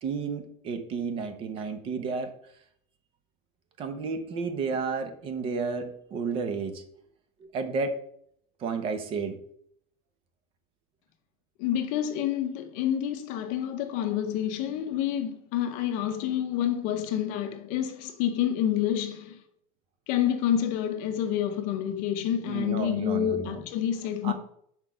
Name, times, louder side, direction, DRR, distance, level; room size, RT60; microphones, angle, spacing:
voice 1, 0.0-2.3 3.8-6.8 7.4-8.0 8.6-9.4 22.5-23.6 24.2-24.3, right 4 dB, 30° right, 0.8 m, -32 dB
voice 2, 11.6-19.4 20.1-24.3, left 10 dB, 50° left, 0.7 m, -28 dB
6.0 x 4.4 x 5.0 m
cardioid pair, 175°, 18 cm